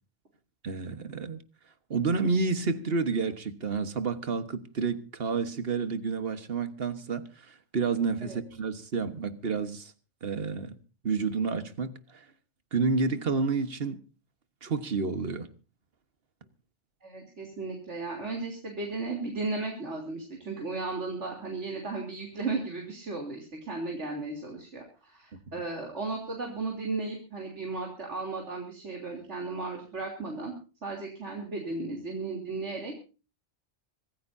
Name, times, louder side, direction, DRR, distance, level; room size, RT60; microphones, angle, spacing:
voice 1, 0.6-1.4 1.9-9.9 10.2-10.7 11.0-12.2 12.7-14.0 14.6-15.5, right 4 dB, 55° right, 1.6 m, -30 dB
voice 2, 17.0-30.5 30.8-32.9, right 3 dB, 75° right, 3.6 m, -35 dB
25.5 x 14.5 x 2.7 m
omnidirectional pair, 1.2 m